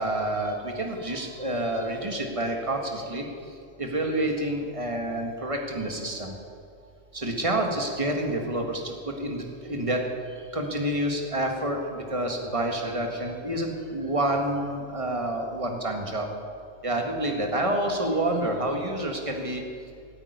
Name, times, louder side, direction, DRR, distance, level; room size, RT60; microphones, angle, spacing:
voice 1, 0.0-3.3 3.8-6.3 7.1-10.0 10.5-16.3 16.8-19.6, right 1 dB, 25° right, 2 dB, 1.8 m, -28 dB
14.0 x 9.0 x 9.4 m, 2.4 s
omnidirectional pair, 1.3 m